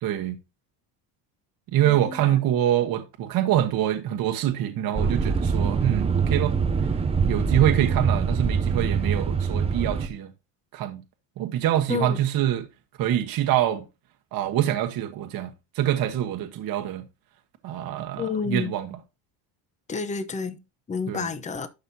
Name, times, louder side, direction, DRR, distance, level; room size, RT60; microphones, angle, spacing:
voice 1, 0.0-0.4 1.7-6.5 7.2-10.3 10.7-11.0 11.4-12.6 13.0-13.8 14.3-15.5 15.7-17.0 17.6-18.9 21.1-21.3, right 12 dB, 50° right, 1.2 m, -25 dB
voice 2, 1.8-2.4 11.9-12.2 18.2-18.8 19.9-20.6 20.9-21.7, left 5 dB, 15° left, 0.8 m, -30 dB
sound 1, 5.0-10.1, right 5 dB, 15° right, 0.5 m, -24 dB
11.5 x 5.5 x 2.7 m
cardioid pair, 130°, 44 cm